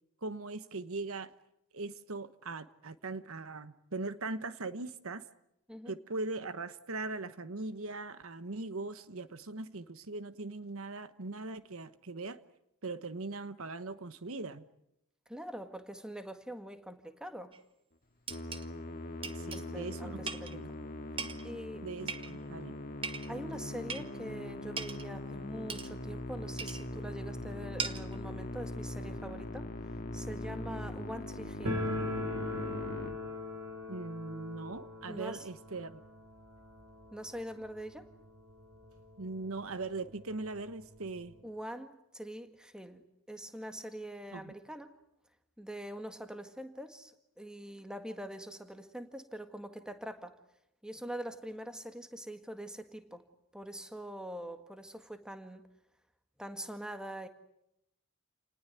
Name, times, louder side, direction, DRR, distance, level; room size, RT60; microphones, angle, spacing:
voice 1, 0.2-1.3 1.7-5.2 5.9-12.4 12.8-14.6 19.3-20.2 20.5-20.7 21.8-22.7 33.9-36.0 39.2-41.3 44.3-44.5, right 3 dB, 65° right, 13 dB, 1.2 m, -40 dB
voice 2, 15.3-17.5 19.5-20.6 21.4-21.8 23.3-29.7 30.1-31.8 35.1-35.4 37.1-38.1 41.4-44.9 45.6-47.1 47.4-50.3 50.8-53.2 53.5-55.6 56.4-57.3, equal, 5° right, 8 dB, 1.8 m, -44 dB
sound 1, 17.5-17.6 18.3-18.7 19.2-19.7 20.3-20.6 21.2-21.5 22.1-22.5 23.0-23.3 23.9-24.1 24.8-25.1 25.7-25.9 26.6-26.9 27.8-28.2, right 5 dB, 25° right, 1.4 m, -39 dB
Musical instrument, 18.3-33.1, left 1 dB, 40° left, 2.3 m, -41 dB
sound 2, 31.6-38.4 38.6-38.7 39.0-39.1 39.8-39.9 40.2-41.4, left 1 dB, 85° right, 4.1 m, -40 dB
29.0 x 19.5 x 9.3 m, 0.82 s
head